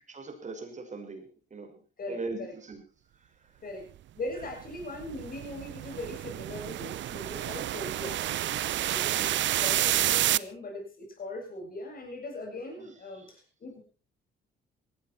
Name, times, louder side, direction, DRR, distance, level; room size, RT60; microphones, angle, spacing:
voice 1, 0.1-2.8 3.2-3.6 4.4-4.5 9.0-9.4 12.8-12.9 13.1-13.3, right 3 dB, 35° right, 6 dB, 5.6 m, -41 dB
voice 2, 2.0-2.5 3.6-3.9 4.2-8.2 8.9-9.3 9.6-13.8, left 2 dB, 45° left, 2 dB, 7.3 m, -40 dB
sound 1, 4.4-10.4, right 13 dB, 70° right, 0.7 m, -29 dB
18.5 x 15.0 x 4.5 m, 0.34 s
cardioid pair, 90°, 20 cm